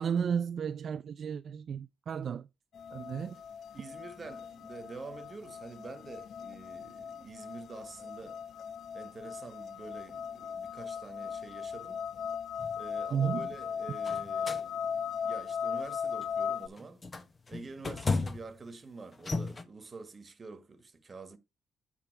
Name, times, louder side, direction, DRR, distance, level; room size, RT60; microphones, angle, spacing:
voice 1, 0.0-2.5 2.9-3.4 13.1-13.5, right 7 dB, 55° right, 0.4 m, -33 dB
sound 1, 2.7-16.7, left 7 dB, 60° left, 0.4 m, -38 dB
voice 2, 3.7-8.4 8.9-12.0 12.7-17.0 17.5-21.4, right 4 dB, 30° right, 1.5 m, -47 dB
sound 2, 12.6-12.8 14.0-14.6 15.2-15.5 16.2-16.4 16.8-18.6 19.1-19.6, left 3 dB, 30° left, 1.2 m, -34 dB
8.6 x 3.6 x 4.6 m
cardioid pair, 90°, 0 cm